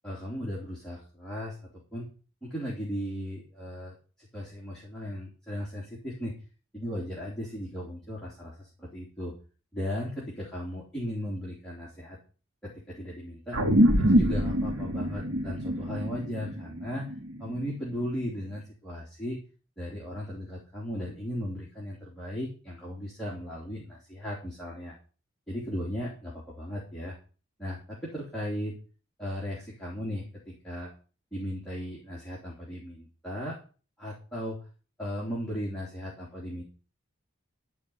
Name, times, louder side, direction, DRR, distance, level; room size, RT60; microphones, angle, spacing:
voice 1, 0.0-2.1 2.4-6.3 6.7-9.3 9.7-12.2 12.6-13.6 14.0-17.1 17.4-19.4 19.8-24.9 25.5-27.1 27.6-28.7 29.2-30.9 31.3-33.6 34.0-34.6 35.0-36.6, equal, 5° left, -7 dB, 3.2 m, -36 dB
sound 1, 13.5-18.3, equal, 80° right, 2.8 m, -26 dB
13.5 x 4.9 x 8.6 m, 0.37 s
head